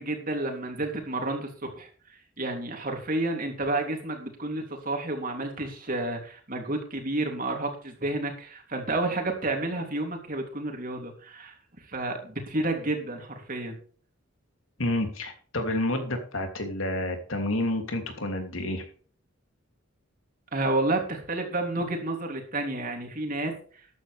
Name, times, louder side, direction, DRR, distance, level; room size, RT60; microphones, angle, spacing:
voice 1, 0.0-1.9 2.4-11.5 11.9-13.8 20.5-23.5, right 2 dB, 40° right, 3 dB, 3.2 m, -30 dB
voice 2, 14.8-18.8, left 1 dB, 75° left, 4 dB, 3.1 m, -29 dB
13.5 x 10.5 x 3.6 m, 0.42 s
head